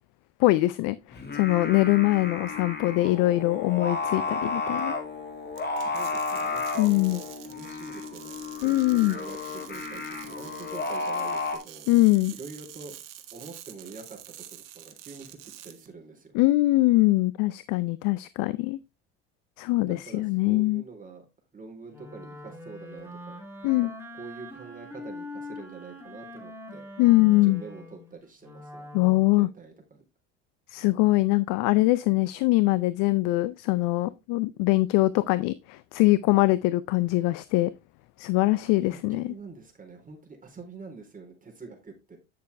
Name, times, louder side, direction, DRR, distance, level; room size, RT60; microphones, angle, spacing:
voice 1, 0.4-4.9 6.8-7.2 8.6-9.2 11.9-12.3 16.3-18.8 19.6-20.8 23.6-23.9 27.0-27.6 28.9-29.5 30.7-37.7 38.2-39.3, left 19 dB, 60° left, 0.6 m, -23 dB
Singing, 1.1-11.6, left 3 dB, 30° left, 2.7 m, -33 dB
sound 1, 5.5-15.9, right 12 dB, 55° right, 1.6 m, -47 dB
voice 2, 5.8-11.9 12.3-13.0 13.3-14.2 14.5-15.4 15.6-16.3 19.8-21.2 21.5-23.3 24.1-26.9 27.4-28.9 29.3-30.0 38.8-42.2, right 4 dB, 20° right, 3.8 m, -45 dB
Wind instrument woodwind instrument, 21.9-29.3, left 1 dB, 5° right, 3.1 m, -43 dB
9.3 x 6.8 x 3.3 m
hypercardioid pair, 70°, 37 cm